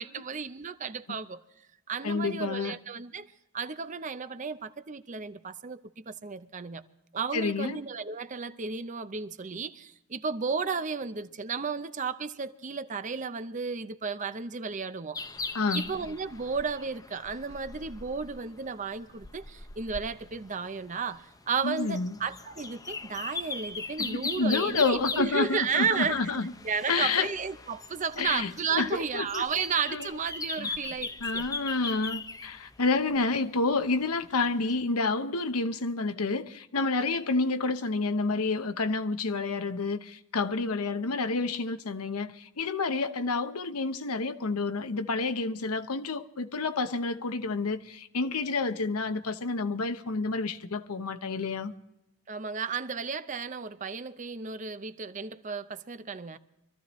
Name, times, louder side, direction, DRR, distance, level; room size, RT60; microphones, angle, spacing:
voice 1, 0.0-1.4 1.9-6.8 7.1-15.2 15.7-26.2 26.6-31.5 52.3-56.4, right 5 dB, 35° right, 0.6 m, -33 dB
voice 2, 2.0-2.7 7.3-7.8 15.5-15.8 21.6-22.1 24.0-26.5 26.9-27.3 28.2-29.4 29.9-30.1 30.6-30.8 31.2-51.7, left 3 dB, 85° left, 0.9 m, -29 dB
sound 1, 15.1-33.2 33.7-33.8 34.6-34.7, left 4 dB, 15° left, 0.5 m, -40 dB
24.5 x 14.0 x 3.1 m
head